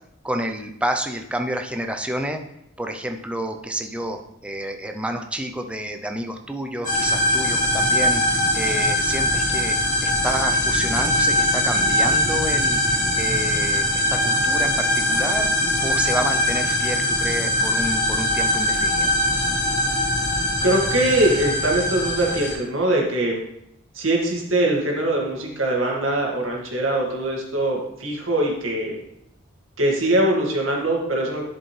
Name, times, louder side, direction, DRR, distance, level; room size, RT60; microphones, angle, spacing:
voice 1, 0.2-2.4 2.8-15.5 15.8-19.1, right 1 dB, 5° right, 4 dB, 0.6 m, -29 dB
sound 1, 6.8-22.5, left 1 dB, 40° left, 2.4 m, -21 dB
voice 2, 20.6-23.4 23.9-29.0 29.8-31.4, right 1 dB, 70° right, -1 dB, 1.9 m, -22 dB
11.0 x 5.2 x 3.3 m, 0.80 s
head